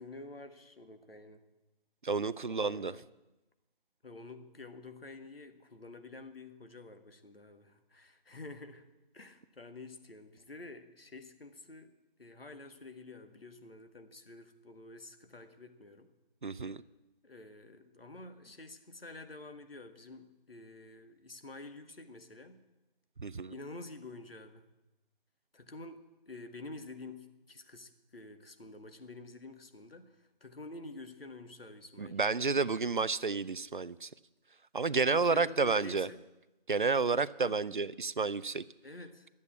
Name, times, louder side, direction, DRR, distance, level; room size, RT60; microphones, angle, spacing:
voice 1, 0.0-1.4 2.5-3.1 4.0-8.9 9.1-11.9 12.2-16.1 17.2-22.6 23.5-24.7 25.5-26.0 26.3-32.2 32.5-32.7 35.1-36.2 37.4-37.6 38.8-39.3, left 2 dB, 75° left, 8 dB, 1.6 m, -49 dB
voice 2, 2.0-2.9 16.4-16.8 23.2-23.5 32.0-34.1 34.7-36.1 36.7-38.6, right 4 dB, 60° right, 18 dB, 0.4 m, -30 dB
12.0 x 8.4 x 8.3 m, 1.0 s
figure-of-eight pair, 170°, 29 cm